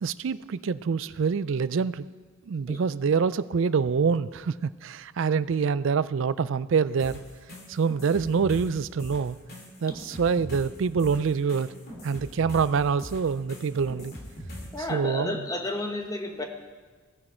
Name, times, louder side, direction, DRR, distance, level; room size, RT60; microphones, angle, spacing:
voice 1, 0.0-2.1 2.5-7.2 7.7-9.4 9.8-11.7 12.0-14.1 14.9-15.4, right 5 dB, 60° right, 17 dB, 0.4 m, -26 dB
sound 1, 7.0-14.8, equal, 45° left, 2.5 m, -41 dB
voice 2, 14.7-16.4, left 2 dB, 15° left, 4 dB, 1.1 m, -32 dB
17.0 x 10.5 x 4.4 m, 1.4 s
head